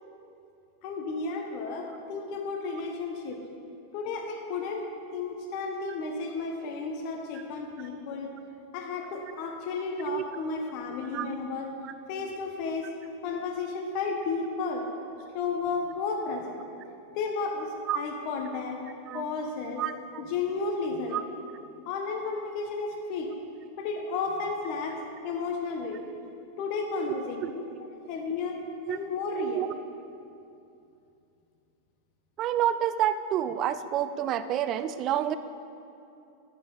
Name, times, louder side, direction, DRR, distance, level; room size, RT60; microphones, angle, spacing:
voice 1, 0.8-3.4 3.9-8.3 8.7-11.7 12.1-12.9 13.2-14.9 15.3-16.6 17.1-18.8 19.1-19.8 20.3-21.3 21.9-23.3 23.8-26.1 26.6-28.6 28.9-29.6, left 4 dB, 55° left, 3 dB, 1.0 m, -33 dB
voice 2, 19.8-20.2 21.1-21.2 27.4-27.5 28.9-29.0 29.4-29.7 32.4-35.3, right 10 dB, 40° right, 12 dB, 0.4 m, -29 dB
11.5 x 7.9 x 3.9 m, 2.7 s
hypercardioid pair, 110°, 0 cm